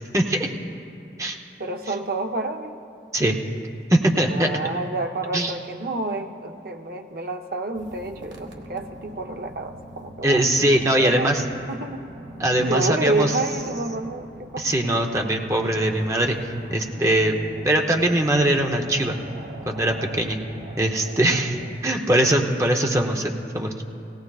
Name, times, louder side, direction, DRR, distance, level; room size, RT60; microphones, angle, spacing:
voice 1, 0.1-0.5 1.2-1.4 3.1-3.4 3.9-4.5 5.3-5.5 10.2-11.4 12.4-13.3 14.6-16.4 16.7-17.4 17.6-19.2 19.7-20.4 20.8-23.8, right 1 dB, 15° right, 2 dB, 0.8 m, -21 dB
voice 2, 1.6-2.8 4.3-10.5 10.9-11.3 11.7-12.0 12.6-14.7 15.0-15.1 21.3-21.5, right 2 dB, 55° right, 5 dB, 0.7 m, -29 dB
sound 1, 7.7-21.7, equal, 90° right, 1.4 m, -41 dB
17.5 x 17.5 x 2.4 m, 2.6 s
head